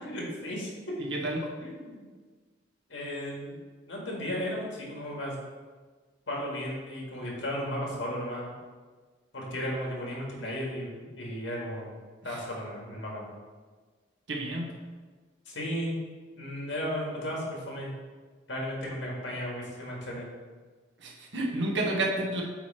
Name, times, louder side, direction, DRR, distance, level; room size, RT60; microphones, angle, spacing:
voice 1, 0.0-0.9 1.6-2.1 2.9-3.5 3.9-5.3 6.3-8.5 9.3-11.9 12.2-13.2 15.5-15.9 16.4-17.9 18.5-20.3, equal, 80° left, -3 dB, 1.9 m, -35 dB
voice 2, 1.0-1.5 12.3-12.4 14.3-14.7 21.0-22.4, right 1 dB, 70° right, -2 dB, 1.2 m, -30 dB
8.2 x 3.3 x 4.3 m, 1.4 s
head